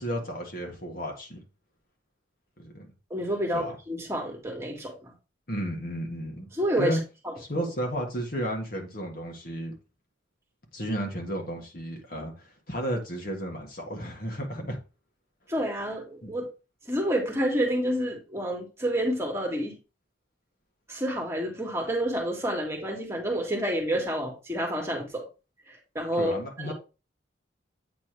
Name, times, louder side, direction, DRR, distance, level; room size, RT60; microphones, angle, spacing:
voice 1, 0.0-1.4 2.6-2.9 3.5-3.8 5.5-6.5 6.8-7.0 7.4-9.7 10.7-14.8 16.2-16.3 26.2-26.7, equal, 50° left, 1.6 m, -33 dB
voice 2, 3.1-5.1 6.5-7.0 7.3-7.6 15.5-16.5 16.9-19.8 20.9-25.3 25.7-26.4 26.6-26.7, right 1 dB, 15° right, 1.8 m, -29 dB
8.5 x 3.4 x 4.5 m
head